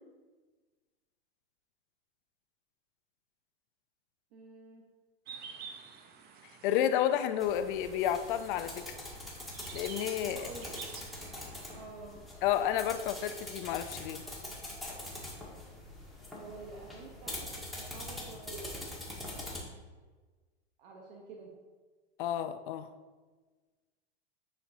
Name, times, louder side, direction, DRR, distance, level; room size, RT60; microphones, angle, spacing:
voice 1, 4.3-4.8 10.3-10.7 11.7-12.2 16.3-18.7 20.8-21.5, right 3 dB, 60° right, -1 dB, 1.1 m, -48 dB
sound 1, 5.3-11.8, right 6 dB, 30° right, 0.7 m, -50 dB
voice 2, 6.6-9.0 9.7-10.5 12.4-14.2 22.2-22.9, left 10 dB, 55° left, 10 dB, 0.6 m, -31 dB
sound 2, 7.4-19.6, left 1 dB, ahead, 1.4 m, -44 dB
9.1 x 4.5 x 2.8 m, 1.3 s
hypercardioid pair, 120°, 32 cm